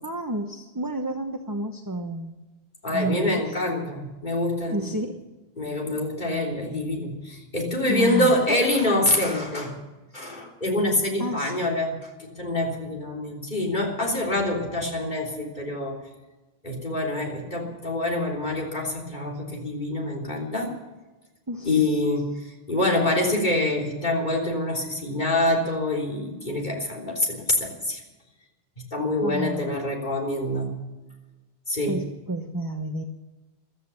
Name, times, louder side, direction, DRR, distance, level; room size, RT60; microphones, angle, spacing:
voice 1, 0.0-2.3 2.9-3.6 4.7-5.2 7.9-8.6 11.2-11.8 21.5-22.0 29.2-29.8 31.9-33.0, right 1 dB, 20° right, 4 dB, 1.0 m, -31 dB
voice 2, 2.8-4.9 5.6-9.8 10.1-11.9 12.2-16.0 16.6-20.8 21.6-28.0 28.8-30.7 31.7-32.0, left 1 dB, 50° left, -1 dB, 3.7 m, -26 dB
15.5 x 13.0 x 7.1 m, 1.1 s
omnidirectional pair, 1.1 m